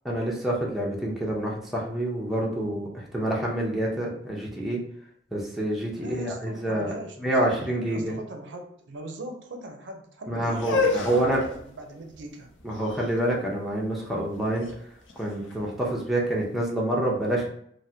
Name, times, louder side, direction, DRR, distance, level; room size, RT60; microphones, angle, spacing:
voice 1, 0.1-4.8 5.3-8.2 10.3-11.4 12.6-14.7 15.2-17.5, right 1 dB, ahead, -4 dB, 0.6 m, -27 dB
voice 2, 5.9-12.5, right 1 dB, 70° right, 3 dB, 0.5 m, -40 dB
sound 1, 10.5-16.4, left 4 dB, 80° left, 0.6 m, -32 dB
3.3 x 2.1 x 2.7 m, 0.68 s
head